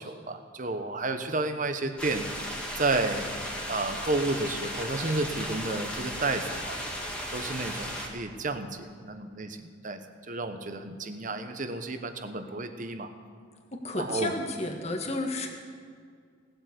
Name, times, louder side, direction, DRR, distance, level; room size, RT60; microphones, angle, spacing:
voice 1, 0.0-2.3 2.8-3.3 3.7-6.8 7.3-10.0 10.3-13.1 13.9-14.3, right 2 dB, 40° right, 8 dB, 1.0 m, -31 dB
sound 1, 2.0-8.1, equal, 5° left, 2.0 m, -36 dB
voice 2, 13.7-15.7, left 2 dB, 35° left, 3 dB, 1.6 m, -32 dB
18.5 x 7.8 x 8.1 m, 2.1 s
head